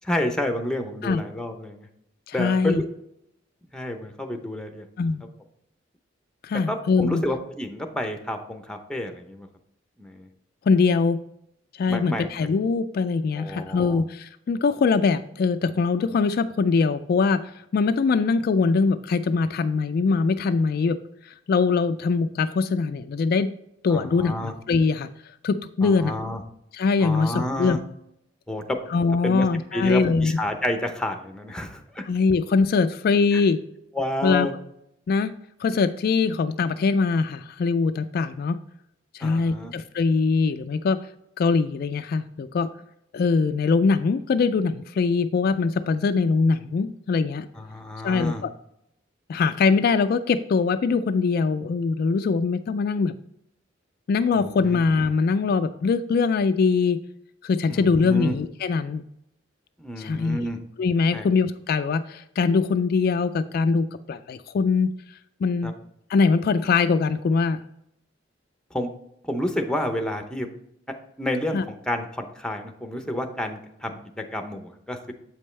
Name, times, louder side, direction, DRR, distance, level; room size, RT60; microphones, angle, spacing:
voice 1, 0.0-1.9 2.3-2.9 3.7-4.8 6.7-9.5 10.0-10.3 11.9-12.3 13.4-14.0 23.9-24.5 25.8-26.4 27.0-27.8 28.5-28.8 29.2-29.5 29.7-32.0 33.3-33.4 33.9-34.5 39.2-39.7 47.6-48.4 54.3-54.8 57.7-58.4 59.8-60.6 61.1-61.3 65.6-65.7 68.7-68.9 69.2-70.5 71.2-75.1, left 1 dB, 5° left, 5 dB, 0.7 m, -30 dB
voice 2, 2.3-2.8 5.0-5.2 6.4-7.2 10.7-11.2 11.8-21.0 21.2-23.5 23.8-25.1 25.4-26.1 26.7-27.8 28.9-30.4 32.1-33.6 34.2-34.5 35.1-35.3 35.6-38.6 39.1-41.0 41.4-42.7 43.1-47.5 48.0-48.5 49.3-53.1 54.1-57.0 57.4-59.0 60.0-60.4 60.8-64.9 65.4-65.7 66.1-67.6 71.5-71.6, left 4 dB, 50° left, 10 dB, 0.3 m, -22 dB
7.5 x 5.3 x 3.2 m, 0.78 s
head